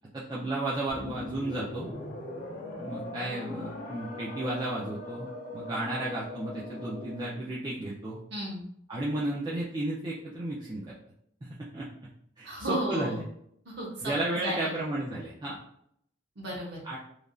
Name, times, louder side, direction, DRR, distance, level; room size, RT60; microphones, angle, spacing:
voice 1, 0.1-1.9 2.8-8.2 8.9-10.8 11.4-11.9 12.4-13.2 14.0-15.6 16.8-17.0, right 1 dB, 25° right, -6 dB, 0.4 m, -33 dB
sound 1, 0.9-7.4, left 2 dB, 45° left, 0.4 m, -40 dB
voice 2, 8.3-8.6 12.4-13.2 13.7-14.7 16.4-16.8, right 1 dB, 70° right, -5 dB, 0.7 m, -33 dB
3.1 x 2.4 x 2.3 m, 0.72 s
head